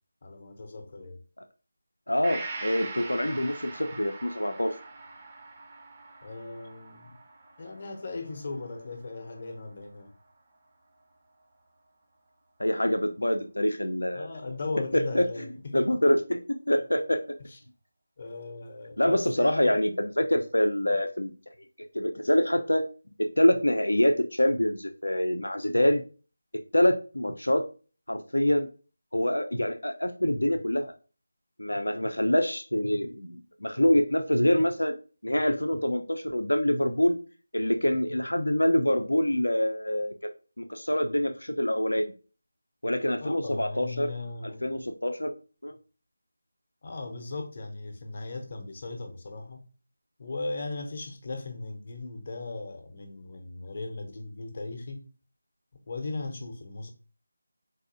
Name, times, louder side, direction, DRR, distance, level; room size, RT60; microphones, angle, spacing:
voice 1, 0.2-1.2 6.2-7.2 7.6-10.1 14.1-15.9 17.5-17.6 18.2-19.8 43.2-44.8 46.8-49.6 50.2-55.1 55.9-56.9, left 3 dB, 40° left, 0.7 m, -37 dB
voice 2, 2.1-4.7 12.6-14.3 14.9-15.3 15.7-17.2 19.0-21.3 21.9-22.9 23.2-26.0 26.7-27.6 28.1-28.7 29.1-30.9 31.6-34.9 35.2-37.2 37.5-40.1 40.6-42.1 42.8-44.1 44.6-45.3 45.6-45.7, left 1 dB, 85° left, 0.5 m, -25 dB
Gong, 2.2-9.9 10.3-10.4, right 3 dB, 25° right, 0.5 m, -43 dB
4.0 x 2.6 x 2.6 m
figure-of-eight pair, 165°, 0 cm